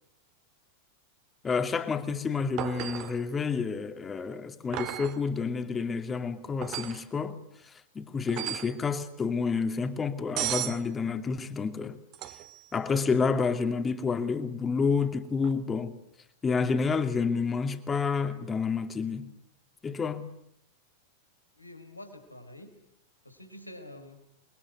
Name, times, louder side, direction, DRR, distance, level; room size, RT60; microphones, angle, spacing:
voice 1, 1.4-7.4 7.6-12.0 12.7-15.9 16.4-19.3 19.8-20.3, left 5 dB, 20° left, 2.6 m, -29 dB
sound 1, 2.6-3.2 4.7-5.2 6.6-7.0 8.3-8.8 10.4-10.8 12.1-12.6 15.4-15.5, right 14 dB, 40° right, 2.0 m, -34 dB
voice 2, 21.5-22.7 23.2-24.3, left 1 dB, 85° left, 4.0 m, -47 dB
28.5 x 22.0 x 9.5 m
figure-of-eight pair, 90°, 0 cm